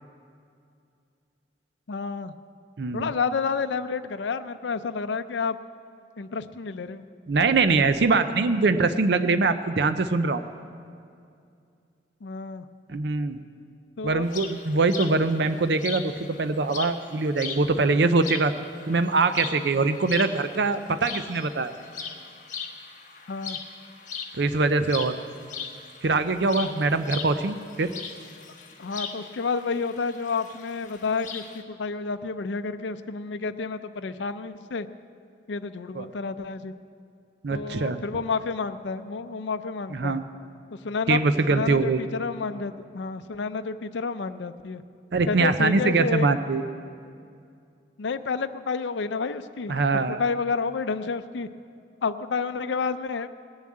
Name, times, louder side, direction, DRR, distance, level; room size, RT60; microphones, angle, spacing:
voice 1, 1.9-2.3 2.9-5.6 6.2-7.0 12.2-12.6 14.0-14.3 23.3-23.6 28.8-34.9 35.5-36.7 37.5-40.2 40.8-41.2 41.5-44.8 45.3-46.3 48.0-49.8 50.1-51.5 52.0-53.3, left 4 dB, 80° left, 9 dB, 0.5 m, -30 dB
voice 2, 2.8-3.1 7.3-10.4 12.9-13.4 14.0-16.1 16.4-18.5 18.9-21.7 24.4-25.2 26.0-27.9 35.9-36.1 37.4-38.0 39.9-40.2 41.1-42.0 45.1-46.6 49.7-50.2, right 3 dB, 65° right, 10 dB, 0.5 m, -23 dB
sound 1, 14.2-31.6, left 6 dB, 45° left, 1.1 m, -40 dB
19.5 x 7.2 x 8.6 m, 2.4 s
head